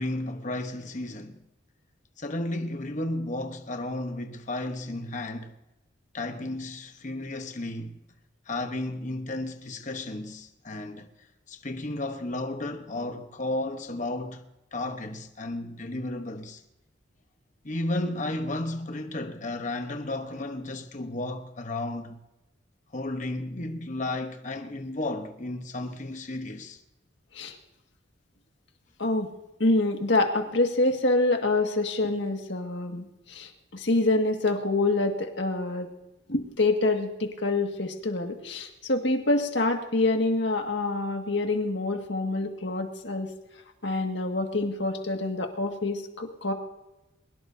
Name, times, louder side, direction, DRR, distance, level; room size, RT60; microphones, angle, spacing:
voice 1, 0.0-1.4 2.2-5.5 6.1-8.0 8.5-11.1 11.5-14.4 14.7-16.6 17.6-22.2 22.9-26.8, left 2 dB, 40° left, 1.1 m, -33 dB
voice 2, 29.6-35.9 36.3-43.3 43.8-46.5, left 2 dB, 65° left, 2.0 m, -26 dB
22.5 x 20.0 x 2.7 m
head